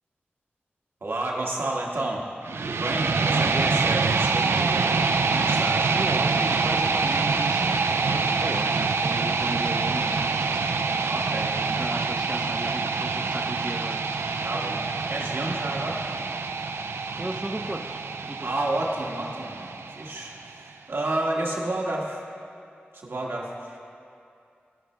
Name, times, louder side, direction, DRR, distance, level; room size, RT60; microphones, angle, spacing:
voice 1, 1.0-2.3 2.6-4.8 5.3-5.9 11.0-11.5 14.4-14.8 15.1-16.0 18.4-22.2 22.9-23.8, right 2 dB, 70° right, -2 dB, 1.4 m, -30 dB
sound 1, 2.4-20.5, right 4 dB, 85° right, 0.4 m, -26 dB
voice 2, 3.3-3.8 5.9-10.5 11.3-14.0 17.1-18.5, right 1 dB, 20° right, 5 dB, 0.5 m, -35 dB
17.5 x 6.0 x 3.3 m, 2.5 s
wide cardioid pair, 70°, 4 cm